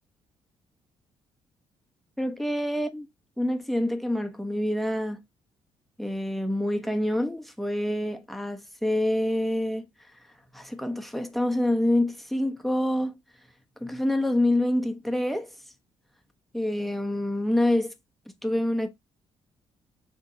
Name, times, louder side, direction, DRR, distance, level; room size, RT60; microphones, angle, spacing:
voice 1, 2.2-3.1 3.4-5.2 6.0-9.9 10.5-13.2 13.8-15.5 16.5-17.9 18.4-18.9, left 1 dB, ahead, 1.1 m, -26 dB
6.8 x 3.6 x 4.0 m
cardioid pair, 105°, 10 cm